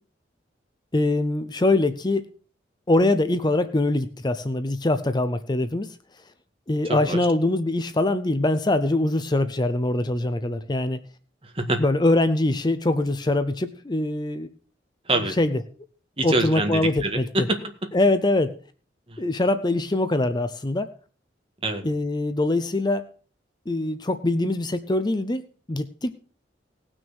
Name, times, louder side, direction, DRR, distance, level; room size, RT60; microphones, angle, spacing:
voice 1, 0.9-2.3 2.9-6.0 6.7-11.0 11.8-14.5 15.4-15.6 16.2-17.5 17.9-18.5 19.2-20.9 21.8-23.0 23.7-26.1, left 2 dB, 25° left, 11 dB, 0.6 m, -23 dB
voice 2, 6.8-7.2 11.4-11.8 15.1-15.4 16.2-17.9 19.1-19.2 21.6-21.8, right 2 dB, 30° right, 5 dB, 1.9 m, -26 dB
18.0 x 6.3 x 6.2 m, 0.42 s
head